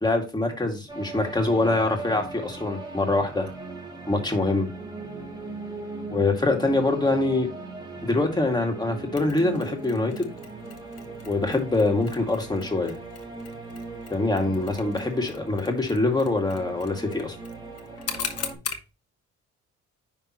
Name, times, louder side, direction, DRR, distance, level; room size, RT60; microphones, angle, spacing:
voice 1, 0.0-3.5 4.1-4.7 6.1-7.5 8.0-10.3 11.2-13.0 14.1-17.3, left 2 dB, 15° left, 2 dB, 2.2 m, -24 dB
sound 1, 0.9-18.6, right 3 dB, 15° right, 2.4 m, -39 dB
Mechanisms, 9.2-18.9, left 7 dB, 55° left, 1.3 m, -41 dB
10.5 x 3.7 x 3.0 m, 0.28 s
cardioid pair, 90°, 30 cm